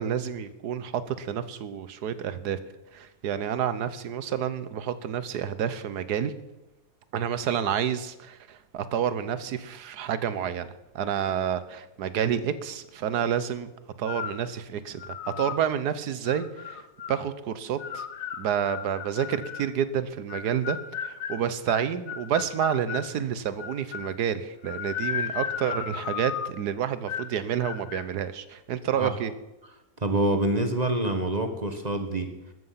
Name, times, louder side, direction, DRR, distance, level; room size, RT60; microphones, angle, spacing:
voice 1, 0.0-2.6 2.9-6.3 7.1-10.7 10.9-13.7 14.0-16.8 17.1-18.1 18.4-29.3, right 8 dB, 90° right, 14 dB, 1.5 m, -29 dB
sound 1, 14.1-14.5 15.0-15.6 16.3-17.2 17.8-19.7 20.3-23.1 23.6-24.2 24.6-26.6 27.1-27.4 27.6-28.1, left 8 dB, 85° left, 1.5 m, -35 dB
voice 2, 30.0-32.3, right 1 dB, 30° right, 7 dB, 1.3 m, -26 dB
14.0 x 13.0 x 5.7 m, 0.96 s
omnidirectional pair, 1.7 m